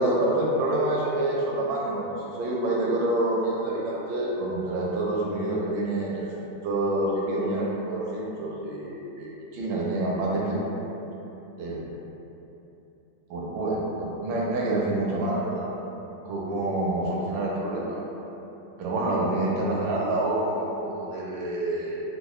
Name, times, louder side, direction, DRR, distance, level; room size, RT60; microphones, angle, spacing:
voice 1, 0.0-2.1 2.3-6.3 6.6-10.6 10.9-11.0 11.6-11.8 13.3-15.7 16.2-18.0 18.8-22.0, right 1 dB, 75° right, -4 dB, 1.2 m, -27 dB
3.8 x 2.2 x 3.0 m, 2.9 s
omnidirectional pair, 2.3 m